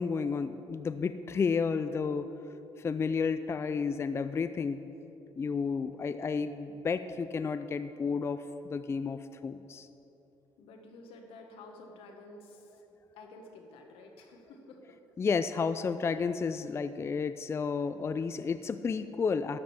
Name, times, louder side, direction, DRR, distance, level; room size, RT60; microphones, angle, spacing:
voice 1, 0.0-2.3 2.8-4.8 5.4-9.9 15.2-19.6, left 5 dB, 30° left, 11 dB, 0.3 m, -31 dB
voice 2, 10.6-12.8 13.2-15.0, left 2 dB, 85° left, 3 dB, 1.4 m, -51 dB
12.5 x 5.2 x 7.3 m, 3.0 s
cardioid pair, 90°, 9 cm